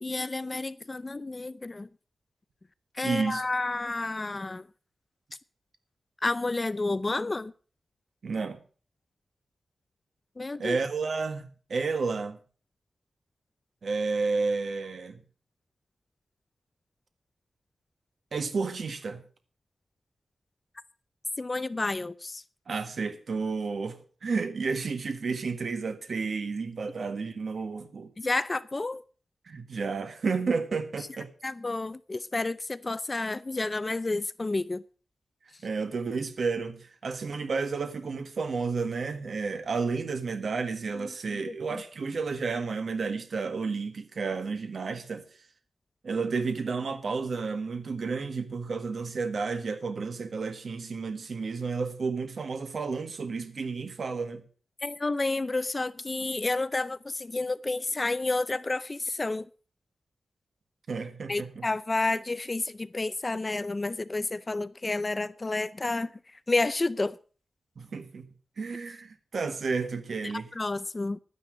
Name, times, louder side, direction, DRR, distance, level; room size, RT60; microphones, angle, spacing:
voice 1, 0.0-1.9 2.9-4.7 6.2-7.5 10.4-10.8 21.4-22.4 28.2-29.0 31.4-34.8 41.0-41.8 54.8-59.5 61.3-66.1 66.5-67.2 70.2-71.2, left 2 dB, 25° left, 0.5 m, -30 dB
voice 2, 3.0-3.4 8.2-8.6 10.6-12.4 13.8-15.2 18.3-19.2 22.7-28.1 29.4-31.3 35.6-45.2 46.0-54.4 60.9-61.6 67.8-68.3 68.6-70.5, right 4 dB, 65° right, 1.6 m, -31 dB
12.0 x 9.9 x 6.3 m
wide cardioid pair, 120°, 0 cm